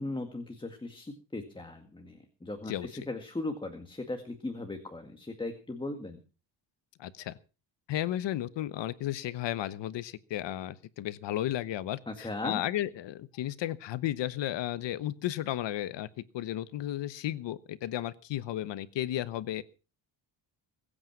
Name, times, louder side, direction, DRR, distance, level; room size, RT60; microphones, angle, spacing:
voice 1, 0.0-6.2 12.1-12.6, left 2 dB, 10° left, 5 dB, 1.9 m, -38 dB
voice 2, 7.0-7.3 7.9-16.1 16.3-19.6, left 13 dB, 75° left, 15 dB, 1.1 m, -34 dB
22.0 x 8.9 x 6.0 m, 0.35 s
cardioid pair, 145°, 43 cm